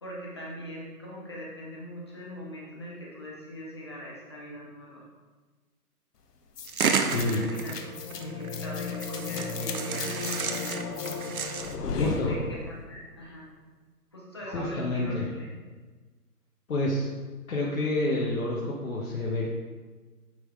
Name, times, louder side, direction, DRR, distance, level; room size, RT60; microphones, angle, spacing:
voice 1, 0.0-5.0 7.2-10.7 12.0-12.6 12.9-13.5 14.1-15.7, equal, 15° left, -5 dB, 0.7 m, -42 dB
sound 1, 6.6-12.9, left 4 dB, 75° left, 1.0 m, -34 dB
sound 2, 6.6-8.5 8.9-11.7, right 6 dB, 60° right, 0.8 m, -31 dB
voice 2, 7.1-7.4 12.0-12.4 14.4-15.3 16.7-17.1 17.5-19.5, left 2 dB, 60° left, -4 dB, 1.3 m, -28 dB
9.5 x 3.8 x 3.7 m, 1.3 s
hypercardioid pair, 170°, 48 cm